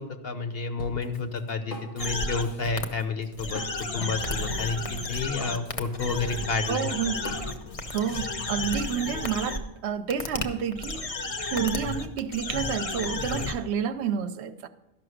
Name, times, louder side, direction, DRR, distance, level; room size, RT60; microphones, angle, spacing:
voice 1, 0.0-6.9, left 4 dB, 60° left, 1.0 m, -30 dB
Drum kit, 0.8-8.0, left 1 dB, 80° left, 1.8 m, -41 dB
sound 1, 2.0-2.4 2.8-2.9 3.3-9.6 10.1-10.4 10.7-13.5, left 2 dB, 35° left, 0.8 m, -32 dB
voice 2, 6.7-7.2 7.9-11.1 11.5-14.7, right 7 dB, 70° right, 0.8 m, -29 dB
sound 2, 7.0-7.3 8.9-9.1 10.9-11.2, right 3 dB, 40° right, 1.0 m, -52 dB
12.5 x 5.9 x 6.4 m
omnidirectional pair, 1.2 m